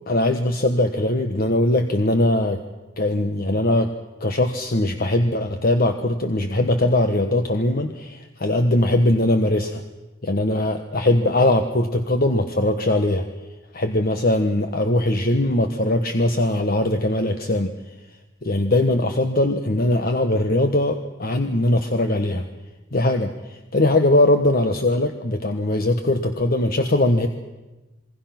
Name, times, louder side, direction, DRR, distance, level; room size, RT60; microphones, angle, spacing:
voice 1, 0.1-2.6 3.0-3.9 4.2-9.8 10.2-13.2 13.7-17.7 18.4-22.5 22.9-27.3, left 1 dB, 50° left, 6 dB, 1.3 m, -20 dB
28.0 x 21.0 x 6.0 m, 1.1 s
head